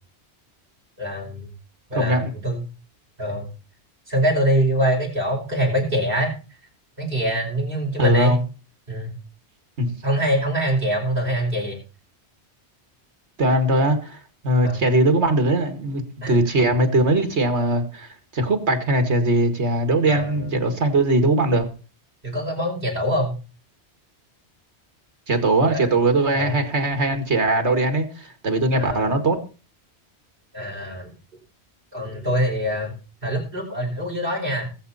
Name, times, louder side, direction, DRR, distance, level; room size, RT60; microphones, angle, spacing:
voice 1, 1.0-1.5 1.9-2.6 3.2-3.5 4.1-6.3 7.0-8.4 8.9-9.1 10.0-11.8 14.6-14.8 16.2-16.5 20.1-20.5 22.2-23.3 25.6-25.9 26.3-26.6 28.7-29.1 30.5-31.1 31.9-32.9 33.2-34.7, equal, 50° right, -1 dB, 5.4 m, -24 dB
voice 2, 1.9-2.3 8.0-8.4 9.8-9.9 13.4-14.2 14.4-18.1 18.3-21.7 25.3-29.4, right 2 dB, 80° right, 7 dB, 2.3 m, -20 dB
20.0 x 7.8 x 4.2 m, 0.34 s
omnidirectional pair, 1.1 m